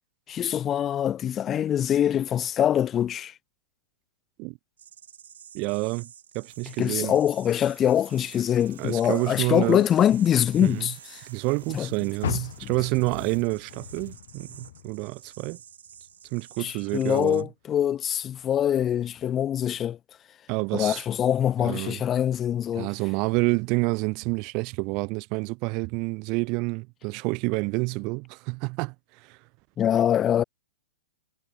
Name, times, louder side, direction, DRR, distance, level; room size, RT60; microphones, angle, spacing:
voice 1, 0.3-3.3 6.8-11.2 11.7-11.9 12.6-12.7 16.6-20.0 20.7-22.9 29.8-30.4, left 10 dB, 20° left, 0.5 m, -24 dB
sound 1, 4.8-17.4, right 9 dB, 80° right, 3.5 m, -50 dB
voice 2, 5.5-6.1 6.3-7.2 8.8-9.8 10.6-10.9 11.2-15.6 16.3-17.4 20.5-21.0 21.6-22.0 22.8-29.4, right 29 dB, 30° right, 0.4 m, -28 dB
sound 2, 6.5-14.2, right 11 dB, 60° right, 6.8 m, -56 dB
Car, 12.2-15.5 15.9-17.2 17.7-17.8 18.4-18.5, left 12 dB, 60° left, 0.6 m, -38 dB
hypercardioid pair, 160°, 0 cm